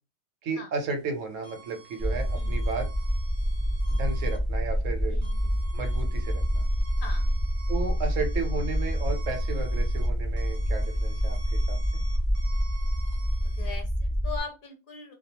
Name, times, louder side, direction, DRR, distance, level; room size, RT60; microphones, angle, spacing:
voice 1, 0.4-2.9 3.9-5.2 5.7-6.7 7.7-12.0, right 4 dB, 75° right, 5 dB, 1.0 m, -34 dB
sound 1, 0.7-13.8, right 3 dB, 45° right, 0.7 m, -51 dB
sound 2, 2.0-14.4, equal, ahead, 0.5 m, -27 dB
voice 2, 5.1-5.6 7.0-7.3 13.6-15.1, left 5 dB, 55° left, 3 dB, 0.6 m, -40 dB
2.3 x 2.2 x 2.8 m, 0.28 s
omnidirectional pair, 1.4 m